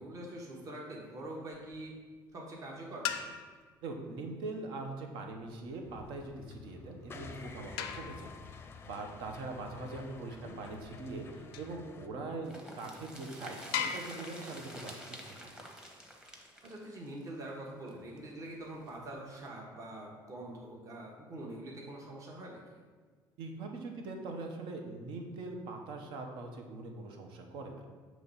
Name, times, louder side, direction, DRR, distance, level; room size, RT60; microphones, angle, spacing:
voice 1, 0.0-1.9 2.3-3.4 10.3-10.6 14.4-14.6 16.6-22.6, right 1 dB, 40° right, -2 dB, 1.1 m, -44 dB
sound 1, 1.5-2.0 2.9-3.8 5.4-11.8 12.5-12.6 13.1-13.2 13.7-16.4 18.5-19.5, left 8 dB, 90° left, 0.4 m, -43 dB
voice 2, 3.8-15.5 23.4-27.9, right 3 dB, 75° right, 3 dB, 0.9 m, -42 dB
sound 2, 5.8-12.1, left 4 dB, 25° left, 0.5 m, -51 dB
sound 3, 12.4-18.2 18.5-18.6 18.9-19.0, equal, 5° right, 0.9 m, -49 dB
6.4 x 3.1 x 5.4 m, 1.5 s
cardioid pair, 115°, 9 cm